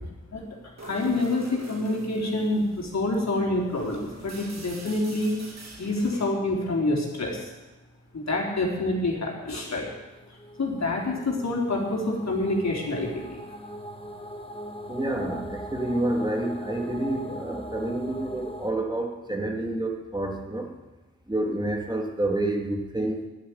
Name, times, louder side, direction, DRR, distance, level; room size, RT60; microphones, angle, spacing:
voice 1, 0.8-5.4 5.8-7.5 8.1-9.9 10.6-13.4, left 2 dB, 65° left, -2 dB, 3.6 m, -27 dB
sound 1, 0.8-6.4, right 3 dB, 65° right, 2.6 m, -45 dB
sound 2, 10.2-18.7, equal, 20° left, 1.5 m, -40 dB
voice 2, 14.9-20.7 21.3-23.3, right 1 dB, 15° right, 1 dB, 2.6 m, -28 dB
10.0 x 9.1 x 9.7 m, 1.1 s
cardioid pair, 40°, 29 cm